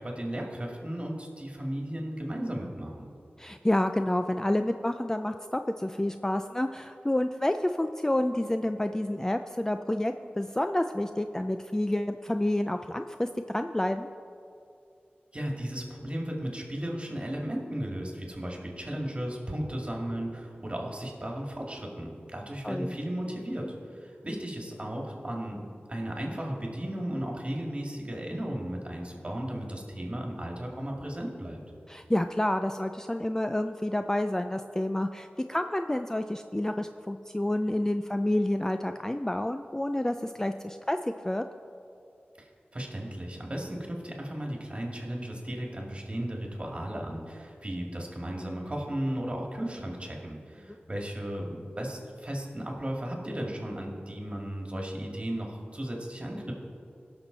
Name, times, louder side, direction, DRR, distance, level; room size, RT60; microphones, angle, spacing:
voice 1, 0.0-3.1 15.3-25.6 25.9-31.6 42.4-56.5, right 1 dB, 30° right, -1 dB, 2.2 m, -35 dB
voice 2, 3.4-14.1 22.6-23.0 31.9-41.0 41.2-41.4, left 1 dB, 15° left, 7 dB, 0.3 m, -29 dB
18.5 x 6.2 x 4.0 m, 2.5 s
wide cardioid pair, 60°, 4 cm